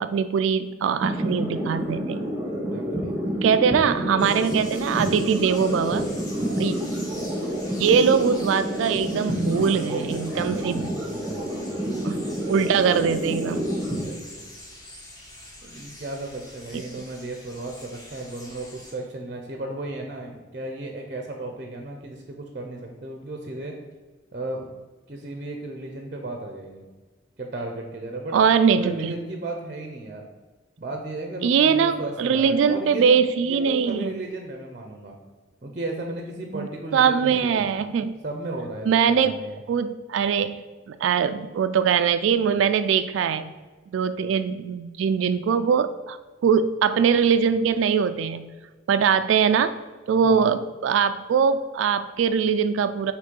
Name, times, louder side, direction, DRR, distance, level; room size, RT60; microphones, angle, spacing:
voice 1, 0.0-2.2 3.4-6.1 6.6-6.7 7.8-10.9 12.0-12.2 12.5-13.7 16.7-17.0 28.3-29.2 31.4-34.2 36.5-36.7 36.9-38.2 38.9-39.4 39.7-43.5 43.9-46.2 46.4-48.5 48.9-49.7 50.1-53.1, right 6 dB, 80° right, 10 dB, 0.3 m, -22 dB
sound 1, 1.0-14.0, equal, 5° right, 1.5 m, -28 dB
voice 2, 2.5-3.2 3.8-4.1 6.3-6.7 9.7-12.5 13.9-14.4 15.6-23.7 24.3-24.7 25.1-26.8 27.4-28.4 28.8-30.3 30.8-33.1 33.4-35.2 35.6-37.7 38.2-39.6 50.2-50.5, right 2 dB, 40° right, 2 dB, 0.6 m, -35 dB
sound 2, 4.2-18.9, left 1 dB, 20° left, 1.2 m, -44 dB
6.5 x 3.1 x 5.2 m, 1.3 s
head